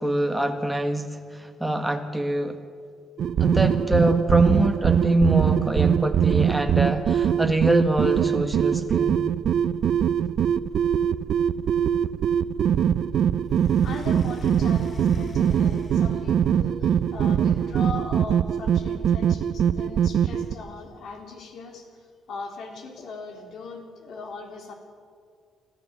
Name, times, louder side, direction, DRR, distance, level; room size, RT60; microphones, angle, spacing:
voice 1, 0.0-2.6 3.4-9.3, right 1 dB, 5° right, 5 dB, 1.7 m, -24 dB
sound 1, 3.2-20.5, right 8 dB, 60° right, 0.6 m, -22 dB
sound 2, 13.5-16.5 17.1-18.0, left 4 dB, 30° left, 1.1 m, -40 dB
voice 2, 13.8-24.7, left 4 dB, 65° left, 3 dB, 3.7 m, -39 dB
24.5 x 14.0 x 8.1 m, 2.1 s
cardioid pair, 150°, 0 cm